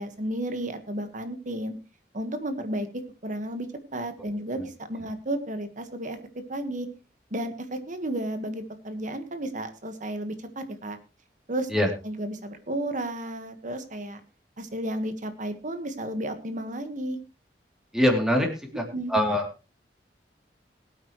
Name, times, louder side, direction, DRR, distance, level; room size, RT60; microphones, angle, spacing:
voice 1, 0.0-1.7 2.1-6.2 6.5-6.9 7.3-11.0 11.5-14.2 14.6-17.2 18.9-19.1, right 1 dB, 45° right, 9 dB, 1.5 m, -33 dB
voice 2, 17.9-19.5, left 1 dB, 5° right, 2 dB, 3.0 m, -24 dB
21.5 x 8.7 x 3.1 m, 0.30 s
head